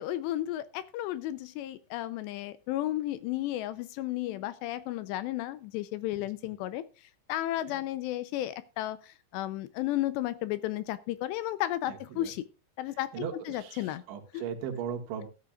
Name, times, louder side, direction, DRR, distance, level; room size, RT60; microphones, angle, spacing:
voice 1, 0.0-6.8 7.3-12.4 12.8-14.0, left 14 dB, 80° left, 14 dB, 2.7 m, -33 dB
voice 2, 11.9-12.3 13.1-15.3, right 8 dB, 80° right, 4 dB, 4.2 m, -38 dB
16.0 x 11.5 x 2.4 m, 0.31 s
omnidirectional pair, 5.3 m